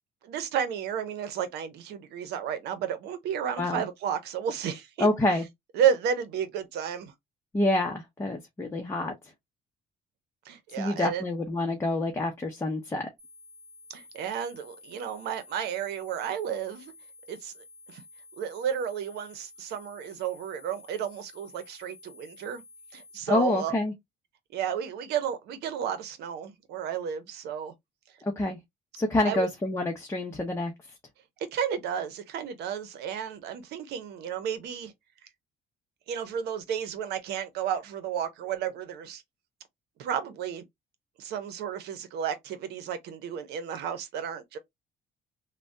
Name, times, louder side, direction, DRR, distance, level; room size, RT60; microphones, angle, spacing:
voice 1, 0.2-5.1 5.7-7.1 10.5-11.2 13.9-16.9 17.3-17.5 17.9-18.0 18.4-22.6 22.9-23.7 24.5-27.7 29.2-29.5 31.5-34.9 36.1-39.2 40.0-40.6 41.2-44.6, right 8 dB, 75° right, 0.8 m, -32 dB
voice 2, 5.0-5.4 7.5-9.1 10.8-13.1 23.3-23.9 28.2-28.6 29.0-30.7, left 2 dB, 15° left, 0.7 m, -27 dB
sound 1, 13.2-23.2, left 3 dB, 50° right, 1.1 m, -52 dB
3.3 x 2.2 x 2.6 m
cardioid pair, 110°, 17 cm